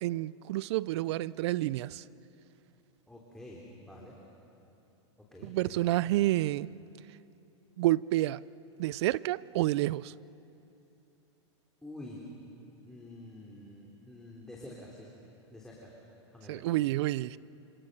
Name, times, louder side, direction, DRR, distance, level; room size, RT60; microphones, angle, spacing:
voice 1, 0.0-2.0 5.4-6.7 7.8-8.4 8.8-10.1 16.5-17.4, right 16 dB, 65° right, 0.5 m, -29 dB
voice 2, 3.1-4.2 5.2-6.0 11.8-12.3 12.8-15.1 15.5-15.9 16.3-16.7, left 1 dB, 5° left, 3.4 m, -48 dB
27.5 x 26.0 x 6.7 m
hypercardioid pair, 115°, 15 cm